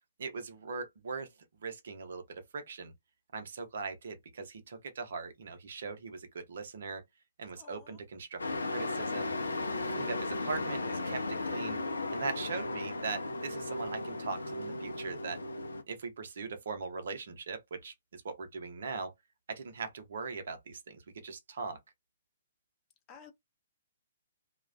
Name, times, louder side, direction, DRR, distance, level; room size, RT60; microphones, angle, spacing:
voice 1, 0.2-1.3 1.6-2.2 2.5-2.9 3.3-7.0 7.4-8.4 8.7-9.3 9.9-11.8 12.1-15.4 15.9-19.1 19.5-21.8, right 4 dB, 60° right, 0.7 m, -40 dB
voice 2, 7.5-8.0 23.1-23.3, left 7 dB, 25° left, 0.6 m, -53 dB
Truck, 8.4-15.8, left 2 dB, 75° left, 0.5 m, -36 dB
2.3 x 2.1 x 2.5 m
figure-of-eight pair, 120°, 0 cm